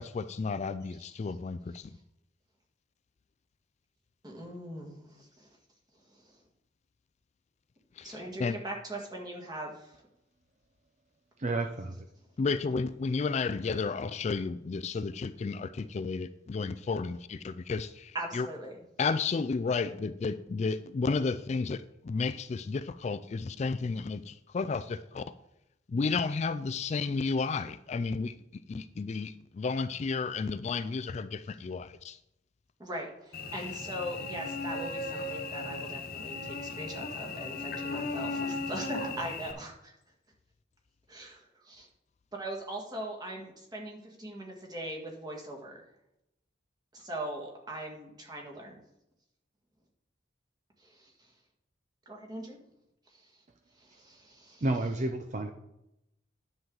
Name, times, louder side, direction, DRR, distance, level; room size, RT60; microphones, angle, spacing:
voice 1, 0.0-1.9 8.0-8.6 12.4-18.5 19.0-25.2 25.9-32.2, left 4 dB, 35° left, 12 dB, 0.3 m, -32 dB
voice 2, 4.2-5.5 6.1-6.4 8.0-9.9 18.1-18.8 32.8-39.9 41.1-41.9 42.3-45.8 46.9-48.8 50.8-51.3 52.0-52.6 53.1-53.4 53.8-54.6, right 1 dB, 20° right, -1 dB, 1.8 m, -41 dB
voice 3, 11.4-12.1 54.6-55.5, right 2 dB, 40° right, 6 dB, 0.5 m, -31 dB
Cricket / Buzz, 33.3-39.5, left 3 dB, 50° left, 1.2 m, -36 dB
10.0 x 7.5 x 3.9 m, 0.86 s
head